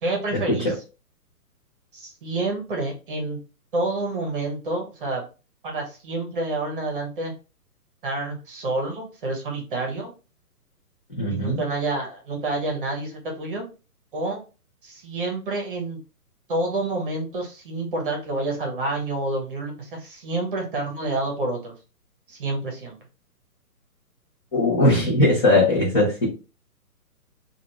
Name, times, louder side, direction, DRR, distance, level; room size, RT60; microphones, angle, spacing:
voice 1, 0.0-0.8 1.9-3.4 3.7-5.2 5.6-7.3 8.0-10.1 11.3-13.7 14.1-14.4 14.8-16.0 16.5-21.7 22.3-23.0, right 2 dB, 35° right, 1 dB, 1.0 m, -28 dB
voice 2, 11.2-11.6 24.5-26.3, left 1 dB, 15° left, -10 dB, 0.8 m, -19 dB
3.3 x 2.5 x 2.9 m, 0.32 s
hypercardioid pair, 165°, 47 cm